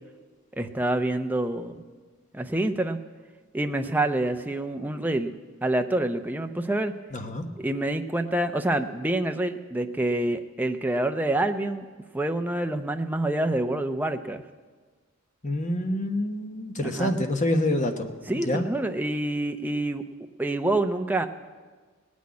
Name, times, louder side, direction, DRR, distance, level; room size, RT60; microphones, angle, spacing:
voice 1, 0.5-1.8 2.3-3.0 3.5-6.9 7.6-11.9 12.1-14.4 16.8-17.1 18.3-20.1 20.4-21.3, right 1 dB, 10° right, 6 dB, 0.6 m, -27 dB
voice 2, 7.1-7.4 15.4-18.1 18.5-18.6, left 1 dB, 35° left, 6 dB, 1.1 m, -26 dB
18.5 x 6.3 x 9.5 m, 1.4 s
head